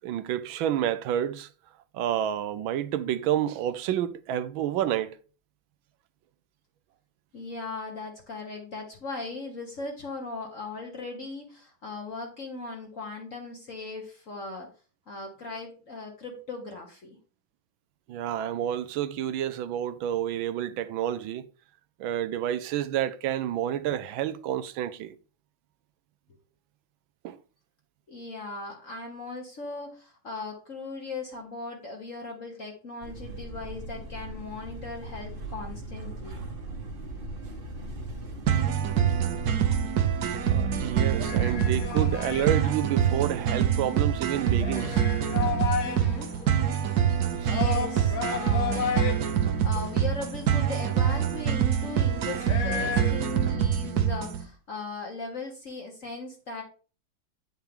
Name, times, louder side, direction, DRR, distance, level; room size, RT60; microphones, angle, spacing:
voice 1, 0.0-1.5 1.9-5.2 18.1-21.5 22.0-25.2 27.2-27.4 40.5-45.0 47.4-47.5, right 11 dB, 80° right, 1.4 m, -29 dB
voice 2, 7.3-14.7 15.1-17.2 28.1-36.3 45.8-46.3 47.5-56.6, left 3 dB, 45° left, 1.5 m, -38 dB
sound 1, 33.0-42.5, right 2 dB, 30° right, 1.2 m, -39 dB
sound 2, 38.5-54.4, right 8 dB, 60° right, 1.2 m, -25 dB
sound 3, 41.1-53.1, left 7 dB, 85° left, 1.9 m, -35 dB
9.2 x 5.8 x 3.6 m
omnidirectional pair, 2.2 m